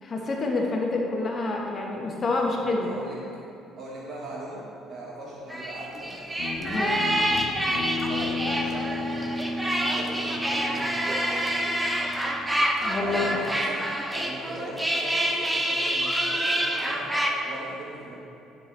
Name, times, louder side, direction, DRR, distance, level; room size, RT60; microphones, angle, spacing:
voice 1, 0.0-2.9 6.7-7.1 12.8-13.3, left 3 dB, 40° left, -1 dB, 1.1 m, -27 dB
voice 2, 2.4-3.3 3.8-6.3 8.0-9.3 9.9-11.1 13.0-18.2, right 1 dB, 50° right, -5 dB, 1.3 m, -39 dB
sound 1, 5.5-17.3, right 1 dB, 10° right, 0.8 m, -27 dB
Guitar, 6.4-12.9, left 2 dB, 65° left, 1.1 m, -34 dB
9.9 x 4.6 x 3.4 m, 2.7 s
hypercardioid pair, 55°, 0 cm